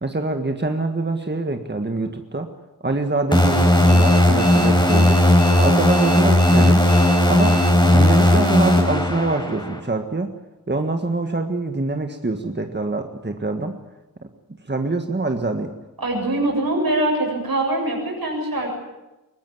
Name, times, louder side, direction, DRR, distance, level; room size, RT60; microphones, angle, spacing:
voice 1, 0.0-2.5 2.8-5.2 5.6-6.8 7.3-10.3 10.7-13.8 14.7-15.7, right 2 dB, 30° right, 5 dB, 1.7 m, -24 dB
sound 1, 3.3-9.8, left 1 dB, 15° left, 4.6 m, -16 dB
Alarm, 3.9-7.7, equal, 50° left, 5.9 m, -34 dB
voice 2, 16.0-18.8, right 1 dB, 80° right, 1 dB, 7.4 m, -23 dB
22.5 x 19.0 x 9.4 m, 1.0 s
wide cardioid pair, 65°, 36 cm